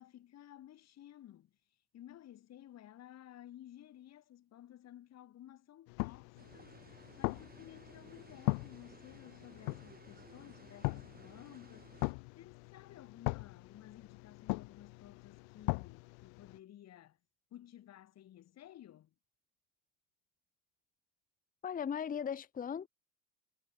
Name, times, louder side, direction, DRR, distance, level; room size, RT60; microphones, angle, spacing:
voice 1, 0.0-1.5 1.9-17.2 17.5-19.1, left 12 dB, 40° left, 1.9 m, -55 dB
sound 1, 5.9-16.6, left 40 dB or more, 65° left, 1.1 m, -41 dB
sound 2, 6.4-12.1, right 5 dB, 20° right, 7.2 m, -59 dB
voice 2, 21.6-22.9, left 7 dB, 20° left, 1.0 m, -37 dB
hypercardioid pair, 95°, 42 cm